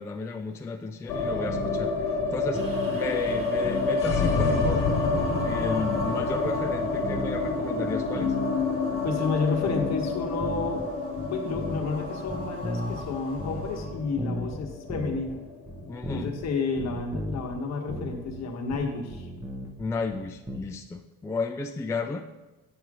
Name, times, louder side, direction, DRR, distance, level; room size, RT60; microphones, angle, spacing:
voice 1, 0.0-4.9 5.4-8.3 15.9-16.3 19.8-22.2, left 3 dB, 10° left, 5 dB, 0.3 m, -33 dB
sound 1, 1.1-17.2 17.4-17.5 17.8-18.5, left 3 dB, 70° left, 1.2 m, -29 dB
sound 2, 1.5-1.9 2.2-2.9 3.3-4.1 4.4-5.5 5.9-6.4 6.6-8.6 8.9-9.3 9.7-10.9 11.2-11.9 12.3-15.3 15.7-16.5 16.8-17.6 17.9-20.6, equal, 10° right, 0.8 m, -36 dB
sound 3, 2.5-13.9, equal, 40° right, 1.4 m, -41 dB
voice 2, 9.0-10.8 11.2-15.4 16.1-19.3, left 4 dB, 50° left, 2 dB, 1.3 m, -31 dB
9.1 x 3.1 x 4.8 m, 1.1 s
cardioid pair, 100°, 33 cm